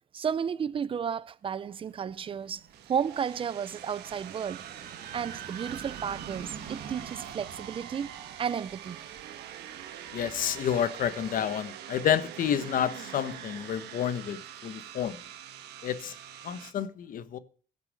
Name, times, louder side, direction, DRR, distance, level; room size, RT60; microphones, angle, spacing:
voice 1, 0.1-2.6 2.9-4.7 5.1-8.1 8.4-9.0, right 7 dB, 30° right, 0.5 m, -32 dB
sound 1, 1.8-11.6, right 8 dB, 65° right, 1.6 m, -46 dB
sound 2, 2.7-16.7, right 10 dB, 80° right, 1.3 m, -45 dB
voice 2, 10.1-15.2 15.8-16.1 16.4-17.4, left 9 dB, 55° left, 1.0 m, -30 dB
15.5 x 6.8 x 6.4 m
cardioid pair, 110°, 17 cm